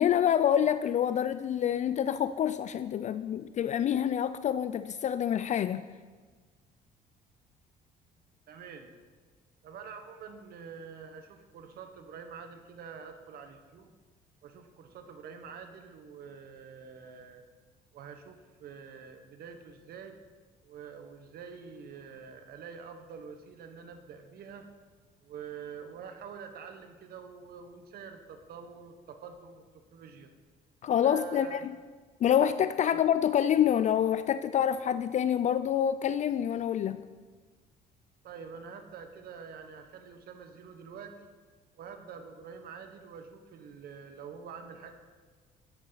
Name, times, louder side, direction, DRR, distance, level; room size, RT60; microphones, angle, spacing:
voice 1, 0.0-5.8 30.8-31.7 32.2-37.0, left 9 dB, 45° left, 13 dB, 0.4 m, -27 dB
voice 2, 8.5-8.9 9.6-13.9 14.4-17.4 17.9-20.2 20.6-24.7 25.2-30.3 31.0-31.6 32.9-33.0 38.2-41.3 41.8-44.9, right 6 dB, 65° right, 7 dB, 1.3 m, -46 dB
13.5 x 9.7 x 4.1 m, 1.4 s
cardioid pair, 110°, 17 cm